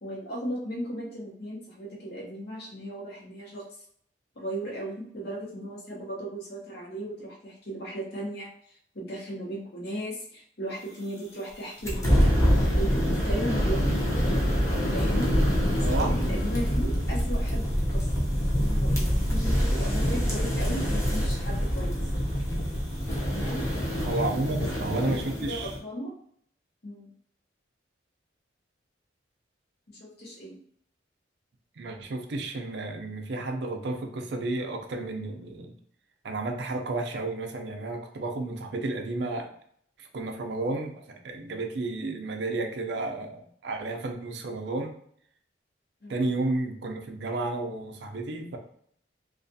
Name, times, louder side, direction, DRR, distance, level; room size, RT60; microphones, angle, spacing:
voice 1, 0.0-3.6 4.4-12.3 12.7-13.8 14.9-15.3 15.8-18.2 18.5-22.0 23.3-23.6 24.4-26.1 26.8-27.1 29.9-30.6 46.0-46.3, equal, 55° left, -3 dB, 0.8 m, -36 dB
sound 1, 11.8-25.8, equal, 15° left, 0.6 m, -25 dB
voice 2, 15.7-16.2 24.0-25.7 31.8-35.8 36.2-39.5 40.0-44.9 46.1-48.6, right 2 dB, 60° right, 3 dB, 0.4 m, -32 dB
2.4 x 2.3 x 2.6 m, 0.63 s
head